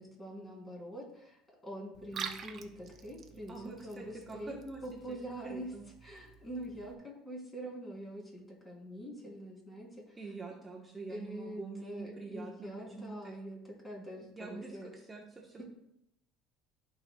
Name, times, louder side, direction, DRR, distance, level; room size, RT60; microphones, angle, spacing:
voice 1, 0.0-10.2 11.1-14.9 15.6-15.7, right 1 dB, 20° left, -2 dB, 3.1 m, -45 dB
Liquid, 1.9-6.9, right 7 dB, 40° right, 0.8 m, -47 dB
voice 2, 3.5-4.8 5.1-5.2 5.4-5.8 10.2-12.7 13.0-13.3 14.4-14.7 15.1-15.6, right 4 dB, 20° right, -1 dB, 1.1 m, -45 dB
14.0 x 4.9 x 2.3 m, 0.78 s
supercardioid pair, 115°, 0 cm